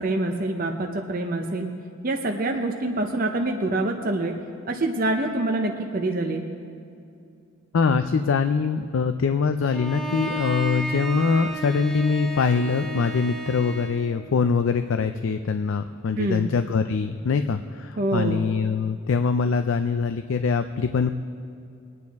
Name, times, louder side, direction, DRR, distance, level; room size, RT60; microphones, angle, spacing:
voice 1, 0.0-1.7 2.0-4.3 4.7-6.5 16.2-16.5 18.0-18.4, right 2 dB, 40° right, 3 dB, 0.7 m, -25 dB
voice 2, 7.7-21.1, left 5 dB, 65° left, 8 dB, 0.4 m, -23 dB
Bowed string instrument, 9.7-14.1, equal, ahead, 0.8 m, -33 dB
22.0 x 9.4 x 3.5 m, 2.5 s
head